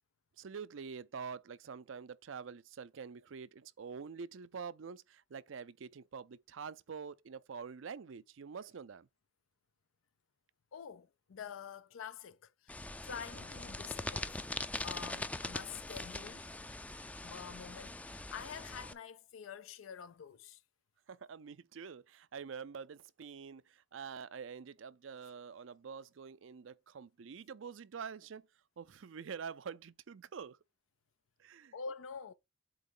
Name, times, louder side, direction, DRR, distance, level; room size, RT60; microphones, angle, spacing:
voice 1, 0.4-9.1 21.1-28.5 28.8-30.6 31.4-31.7, right 6 dB, 75° right, 0.5 m, -46 dB
voice 2, 10.7-16.6 17.2-20.6 31.7-32.3, left 6 dB, 90° left, 0.4 m, -47 dB
sound 1, 12.7-18.9, left 2 dB, 5° left, 0.4 m, -42 dB
7.9 x 3.0 x 5.5 m
head